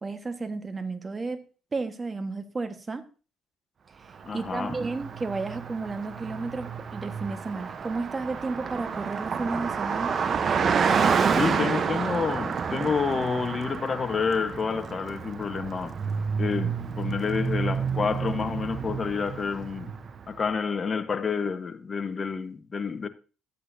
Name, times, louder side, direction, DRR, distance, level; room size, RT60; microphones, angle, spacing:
voice 1, 0.0-1.4 1.7-3.0 4.0-10.2, right 3 dB, 30° right, 1.4 m, -32 dB
voice 2, 4.2-4.8 11.4-16.0 16.4-19.9 20.3-23.1, left 5 dB, 40° left, 1.1 m, -29 dB
Car passing by, 4.2-20.3, right 6 dB, 50° right, 0.9 m, -29 dB
13.0 x 8.4 x 2.7 m
supercardioid pair, 75°, 0 cm